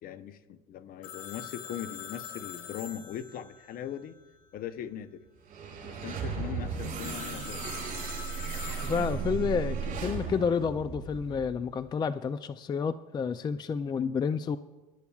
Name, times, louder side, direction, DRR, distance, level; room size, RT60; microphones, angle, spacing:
voice 1, 0.0-4.2 4.5-5.3 5.8-7.7, left 10 dB, 50° left, 0.7 m, -40 dB
Telephone, 1.0-4.7 7.0-9.6, left 8 dB, 90° left, 2.2 m, -44 dB
sound 1, 5.4-11.7, right 6 dB, 45° right, 5.3 m, -35 dB
voice 2, 8.8-14.6, left 6 dB, 20° left, 0.4 m, -30 dB
24.5 x 12.0 x 2.4 m
supercardioid pair, 100°, 20 cm